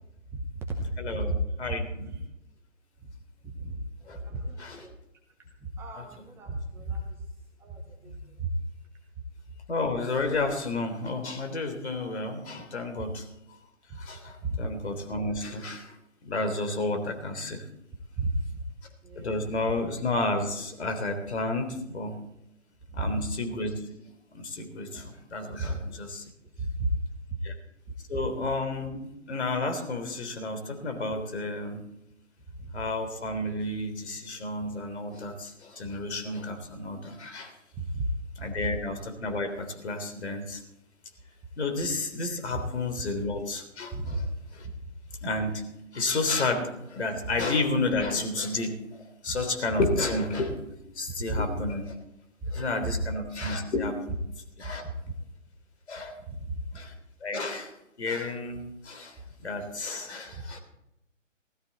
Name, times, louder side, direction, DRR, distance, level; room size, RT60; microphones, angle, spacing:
voice 1, 0.3-1.6 2.0-2.2 3.0-3.1 3.4-3.8 4.1-4.9 5.6-7.2 7.6-8.5 13.9-14.0 14.4-14.6 18.2-18.6 19.0-19.6 23.0-23.3 25.6-26.0 26.6-27.0 27.3-27.4 32.6-32.8 37.8-38.1 38.6-38.7 43.9-44.2 44.6-44.7 49.3-49.4 51.3-51.6 52.4-52.5 52.8-53.0 53.4-53.5 54.8-55.1 56.3-56.6 60.3-60.4, right 1 dB, 5° right, 0 dB, 0.8 m, -33 dB
voice 2, 1.0-1.3 1.6-2.1 4.1-4.2 4.6-4.9 6.0-6.1 8.1-8.2 9.7-13.3 14.0-16.0 16.2-17.6 19.2-22.2 23.0-23.7 24.3-26.2 27.4-27.5 28.1-31.8 32.7-37.5 38.4-40.6 41.6-44.2 45.2-45.6 45.9-52.0 52.5-54.2 54.6-54.9 55.9-56.2 56.7-56.9 57.2-57.7 58.0-60.6, left 2 dB, 60° left, 6 dB, 3.6 m, -31 dB
17.5 x 14.0 x 4.2 m, 0.84 s
figure-of-eight pair, 140°, 38 cm